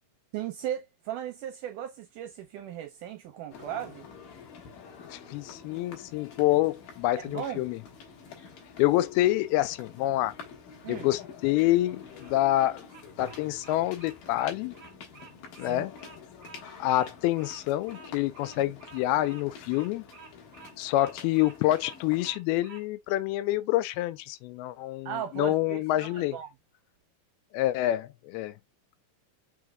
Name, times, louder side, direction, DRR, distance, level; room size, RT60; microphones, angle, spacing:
voice 1, 0.3-4.1 7.2-7.7 10.8-11.1 15.7-15.8 25.1-26.5, right 10 dB, 80° right, 1.9 m, -37 dB
sound 1, 3.5-22.4, left 6 dB, 70° left, 2.9 m, -48 dB
voice 2, 5.1-7.8 8.8-10.3 10.9-12.9 13.2-14.7 15.6-15.9 16.8-20.0 20.8-26.4 27.5-28.5, left 15 dB, 85° left, 2.5 m, -27 dB
Bird vocalization bird call bird song, 12.0-22.8, right 4 dB, 55° right, 1.1 m, -51 dB
6.1 x 3.7 x 2.2 m
omnidirectional pair, 4.4 m